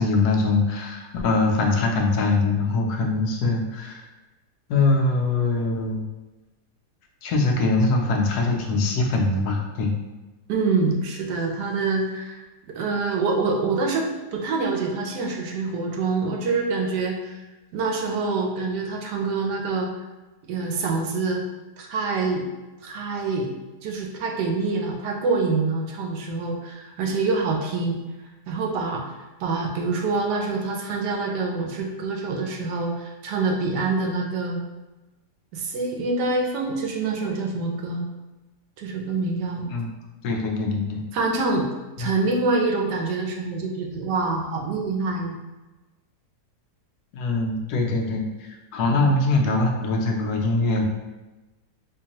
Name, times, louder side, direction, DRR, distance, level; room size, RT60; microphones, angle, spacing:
voice 1, 0.0-4.1 4.7-6.0 7.2-9.9 39.7-39.9 40.2-41.0 42.0-42.1 47.1-50.8, left 3 dB, 75° left, 2 dB, 1.1 m, -23 dB
voice 2, 10.5-12.4 12.7-17.5 17.7-19.9 20.4-21.4 21.8-22.5 22.8-23.5 23.8-28.0 28.5-29.0 29.4-34.6 35.5-38.0 38.8-39.7 41.1-41.7 42.0-45.4 48.1-48.2 48.9-49.1, right 3 dB, 85° right, 1 dB, 1.2 m, -26 dB
3.7 x 3.0 x 2.8 m, 1.1 s
omnidirectional pair, 1.7 m